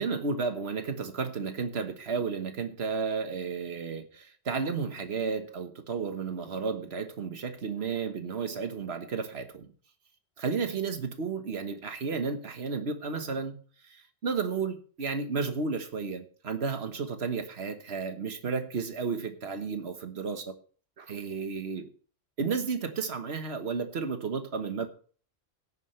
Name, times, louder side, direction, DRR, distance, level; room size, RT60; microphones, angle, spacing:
voice 1, 0.0-9.7 10.4-13.6 13.9-20.5 21.0-21.9 22.4-24.9, right 5 dB, 70° right, 8 dB, 1.5 m, -32 dB
17.0 x 9.6 x 3.2 m, 0.42 s
omnidirectional pair, 1.1 m